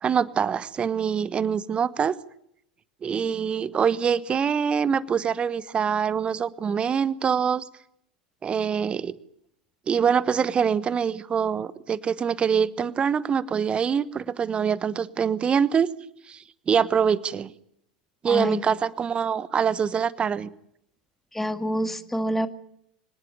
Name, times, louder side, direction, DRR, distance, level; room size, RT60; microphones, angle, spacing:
voice 1, 0.0-2.2 3.0-7.6 8.4-9.1 9.9-15.9 16.3-17.5 18.2-20.5, right 7 dB, 25° right, 17 dB, 1.1 m, -24 dB
voice 2, 18.3-18.6 21.3-22.5, equal, 5° left, 10 dB, 1.8 m, -27 dB
25.5 x 18.5 x 9.8 m, 0.73 s
figure-of-eight pair, 85°, 4 cm